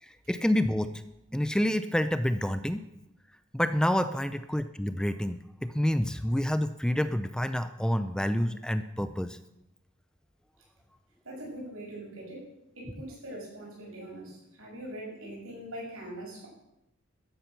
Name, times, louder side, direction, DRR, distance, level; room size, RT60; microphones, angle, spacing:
voice 1, 0.0-0.9 1.3-2.8 3.5-9.4, equal, 5° left, 11 dB, 0.5 m, -28 dB
voice 2, 11.2-12.5 12.8-16.5, right 1 dB, 75° right, -3 dB, 7.4 m, -42 dB
14.0 x 10.0 x 6.9 m, 0.87 s
head